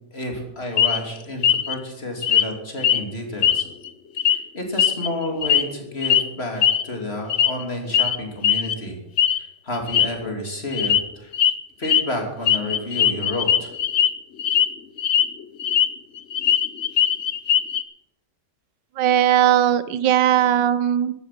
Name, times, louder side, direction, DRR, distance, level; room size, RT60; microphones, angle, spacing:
voice 1, 0.1-3.6 4.3-9.0 9.3-11.3 11.8-13.7, left 1 dB, 35° left, 2 dB, 3.1 m, -30 dB
sound 1, 0.8-1.0 1.4-1.7 2.2-2.5 2.8-3.0 3.4-3.9 4.2-4.4 4.8-5.7 6.0-6.2 6.6-6.8 7.3-7.6 7.9-8.2 8.4-8.7 9.2-9.4 9.7-10.1 10.7-11.0 11.3-11.5 11.8-12.0 12.5-14.1 14.4-14.7 15.0-15.9 16.2-17.8, left 9 dB, 55° left, 0.8 m, -19 dB
voice 2, 19.0-21.1, right 11 dB, 85° right, 15 dB, 1.5 m, -18 dB
15.0 x 12.5 x 5.9 m, 0.88 s
omnidirectional pair, 1.9 m